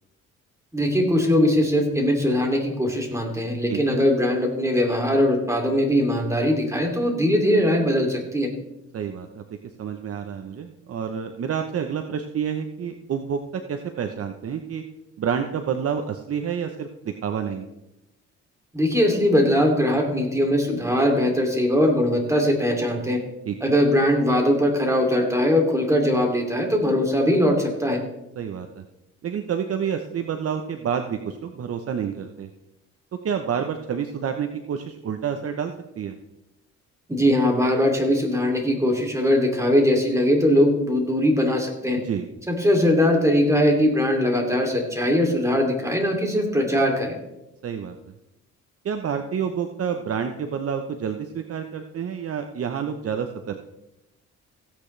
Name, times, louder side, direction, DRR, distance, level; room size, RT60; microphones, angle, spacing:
voice 1, 0.7-8.5 18.7-23.2 23.6-28.0 37.1-42.0 42.5-47.2, equal, 10° right, 1 dB, 2.7 m, -21 dB
voice 2, 3.7-4.0 8.9-9.4 9.8-14.8 15.2-17.7 23.5-23.7 28.4-28.8 29.2-32.5 33.2-36.1 42.0-42.3 47.6-48.0 48.8-53.6, right 7 dB, 50° right, 6 dB, 0.9 m, -29 dB
16.0 x 8.8 x 3.3 m, 0.91 s
cardioid pair, 90°, 30 cm